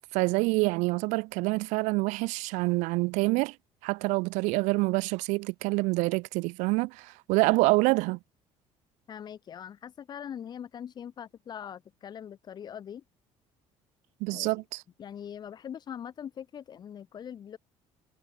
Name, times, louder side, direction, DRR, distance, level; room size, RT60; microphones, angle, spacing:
voice 1, 0.1-3.6 3.8-8.2 14.2-14.8, right 25 dB, 90° right, 0.7 m, -26 dB
voice 2, 9.1-13.0 14.3-14.5 15.0-17.6, left 8 dB, 35° left, 1.2 m, -42 dB
cardioid pair, 145°, 12 cm